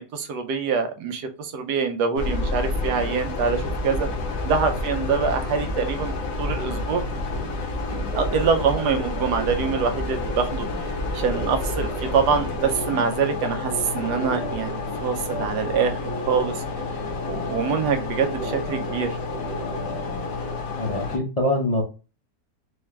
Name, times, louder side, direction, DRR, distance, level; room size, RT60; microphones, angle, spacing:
voice 1, 0.0-4.1 4.5-6.1 6.4-7.0 7.9-16.0 16.3-16.6 17.3-19.2, right 6 dB, 85° right, 6 dB, 1.3 m, -25 dB
sound 1, 2.2-21.2, left 3 dB, 60° left, 1.1 m, -29 dB
sound 2, 8.1-20.5, right 2 dB, 50° right, 0.5 m, -36 dB
voice 2, 20.8-21.8, left 1 dB, 40° left, -2 dB, 0.5 m, -24 dB
4.2 x 2.3 x 3.2 m, 0.32 s
omnidirectional pair, 1.8 m